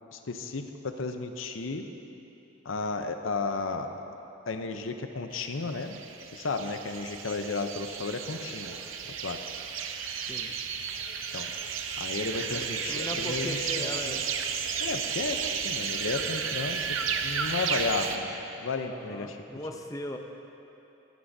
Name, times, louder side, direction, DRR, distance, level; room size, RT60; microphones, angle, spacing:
voice 1, 0.1-1.9 2.6-3.9 4.5-6.0 6.3-8.8 9.2-9.4 11.3-11.5 12.0-14.2 14.8-19.4, left 3 dB, 75° left, 7 dB, 0.7 m, -33 dB
sound 1, 5.4-18.2, right 6 dB, 75° right, 0.6 m, -33 dB
voice 2, 12.5-14.3 18.9-20.2, left 1 dB, 15° left, 3 dB, 0.6 m, -38 dB
21.0 x 9.3 x 2.7 m, 3.0 s
head